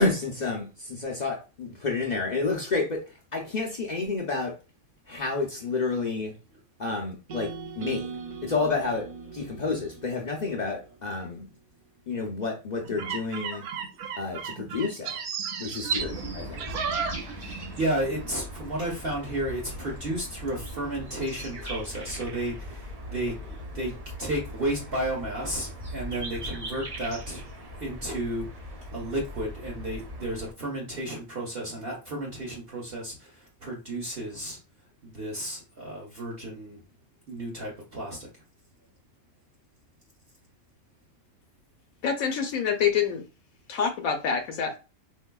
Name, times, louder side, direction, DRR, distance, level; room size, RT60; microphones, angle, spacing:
voice 1, 0.0-3.0 3.3-4.6 5.1-6.3 6.8-8.1 8.4-11.5 12.1-13.7 14.2-15.2 15.6-16.7, left 3 dB, 55° left, 0.5 m, -30 dB
sound 1, 7.3-11.4, right 5 dB, 70° right, 0.4 m, -41 dB
sound 2, 12.9-17.8 18.1-18.3, right 6 dB, 90° right, 1.1 m, -33 dB
voice 2, 13.9-14.6 15.6-15.8 17.3-36.8 37.3-38.4, right 1 dB, 50° right, 0.9 m, -33 dB
sound 3, 16.0-30.5, equal, 20° right, 0.7 m, -40 dB
voice 3, 42.0-43.2 43.7-44.8, left 7 dB, 75° left, 1.0 m, -26 dB
4.2 x 2.6 x 2.2 m
omnidirectional pair, 1.5 m